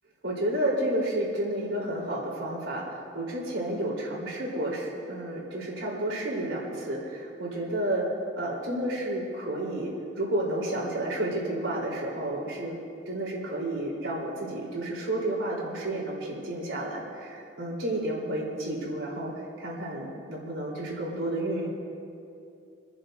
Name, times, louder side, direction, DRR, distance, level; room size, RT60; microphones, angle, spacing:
voice 1, 0.2-8.1 8.4-12.8 13.1-19.3 19.6-21.7, right 1 dB, 85° right, -4 dB, 3.6 m, -31 dB
29.5 x 11.0 x 2.6 m, 2.5 s
head